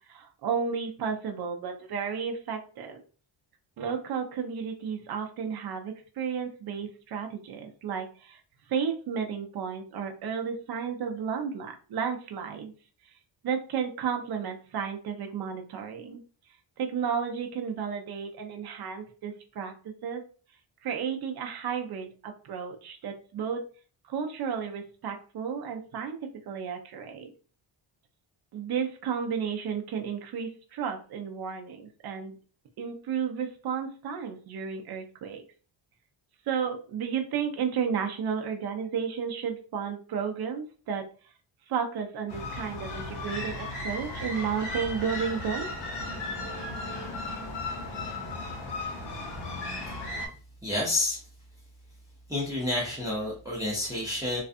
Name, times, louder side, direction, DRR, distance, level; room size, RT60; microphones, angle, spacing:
voice 1, 0.1-3.0 3.8-8.4 8.7-12.7 13.4-16.2 16.8-20.2 20.8-23.7 24.0-27.3 28.5-32.3 32.8-35.4 36.5-41.1 41.7-45.7, right 7 dB, 55° right, 4 dB, 0.5 m, -33 dB
sound 1, 42.3-50.3, left 2 dB, 55° left, 1.0 m, -35 dB
voice 2, 50.6-51.2 52.3-54.4, left 2 dB, 5° right, -5 dB, 0.7 m, -29 dB
2.4 x 2.3 x 2.5 m, 0.39 s
wide cardioid pair, 125°, 48 cm